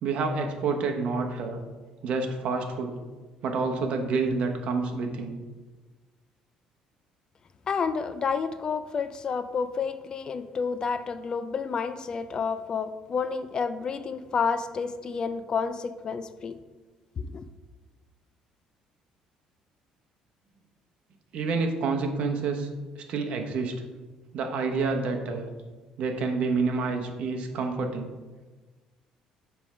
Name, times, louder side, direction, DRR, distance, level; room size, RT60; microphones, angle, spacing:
voice 1, 0.0-1.6 2.0-2.9 3.4-5.3 21.3-22.7 22.9-23.8 24.3-25.5 26.0-28.1, right 4 dB, 60° right, 4 dB, 1.0 m, -28 dB
voice 2, 7.7-16.5 17.2-17.5, left 5 dB, 35° left, 11 dB, 0.4 m, -30 dB
7.0 x 3.4 x 5.8 m, 1.3 s
cardioid pair, 125°, 2 cm